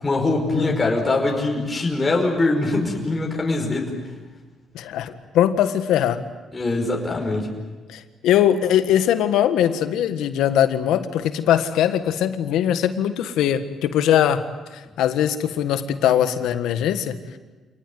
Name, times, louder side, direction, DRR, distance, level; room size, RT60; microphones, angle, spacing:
voice 1, 0.0-4.0 6.5-7.5, left 2 dB, 25° left, 0 dB, 5.3 m, -22 dB
voice 2, 4.7-6.2 7.9-14.4 14.7-17.2, left 10 dB, 85° left, 10 dB, 1.6 m, -21 dB
28.0 x 19.5 x 9.5 m, 1.3 s
cardioid pair, 90°, 0 cm